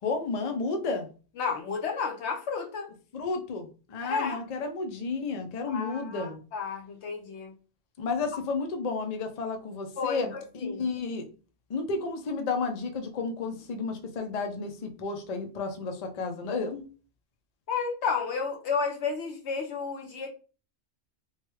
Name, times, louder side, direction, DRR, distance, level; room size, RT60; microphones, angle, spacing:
voice 1, 0.0-1.1 3.1-6.4 8.0-11.3 11.7-16.8, left 4 dB, 50° left, 5 dB, 0.5 m, -32 dB
voice 2, 1.4-2.9 4.0-4.4 5.7-7.5 10.0-10.9 17.7-20.3, left 5 dB, 80° left, 2 dB, 1.0 m, -32 dB
3.1 x 2.2 x 3.0 m, 0.36 s
omnidirectional pair, 1.1 m